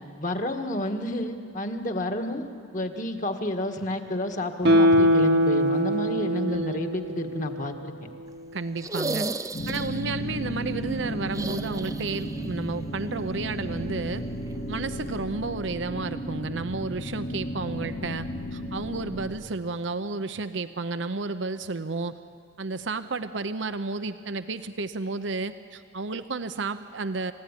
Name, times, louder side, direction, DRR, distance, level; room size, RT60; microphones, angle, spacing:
voice 1, 0.2-2.5 2.7-7.9, left 1 dB, 45° left, 5 dB, 1.8 m, -30 dB
Guitar, 4.6-7.9 8.3-8.4, equal, 60° right, 1.2 m, -22 dB
voice 2, 8.5-9.3 9.7-14.2 14.7-22.1 22.6-27.3, right 3 dB, 80° right, 11 dB, 0.7 m, -32 dB
sound 1, 8.8-10.2 11.3-12.5 12.7-12.8 14.5-14.6, right 3 dB, 15° right, 0.6 m, -33 dB
sound 2, 9.5-19.3, equal, 70° left, 2.4 m, -34 dB
28.5 x 16.0 x 9.9 m, 2.2 s
head